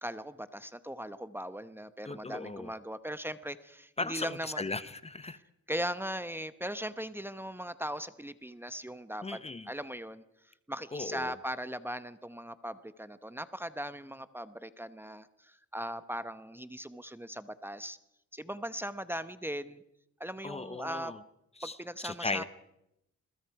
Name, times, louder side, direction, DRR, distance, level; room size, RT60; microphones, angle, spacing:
voice 1, 0.0-4.6 5.7-9.4 9.7-18.0 18.3-19.8 20.2-21.2 21.6-22.4, equal, 5° right, 13 dB, 0.9 m, -39 dB
voice 2, 2.0-2.7 4.0-5.4 9.2-9.7 10.9-11.4 20.4-21.2 21.6-21.8 22.0-22.4, left 3 dB, 20° left, 13 dB, 0.9 m, -37 dB
27.0 x 21.5 x 4.8 m, 0.83 s
cardioid pair, 90°, 30 cm